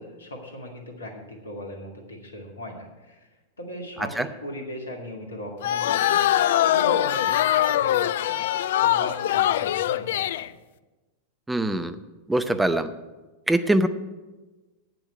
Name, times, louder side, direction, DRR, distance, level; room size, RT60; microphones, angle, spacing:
voice 1, 0.0-3.3 3.6-6.3 6.6-8.4 8.8-10.5, left 1 dB, 75° left, 2 dB, 2.3 m, -38 dB
sound 1, 5.6-10.5, left 12 dB, 55° left, 0.3 m, -22 dB
voice 2, 11.5-12.0 12.3-12.9 13.5-13.9, right 1 dB, 5° right, 10 dB, 0.7 m, -22 dB
9.1 x 7.7 x 8.1 m, 1.2 s
figure-of-eight pair, 90°, 0 cm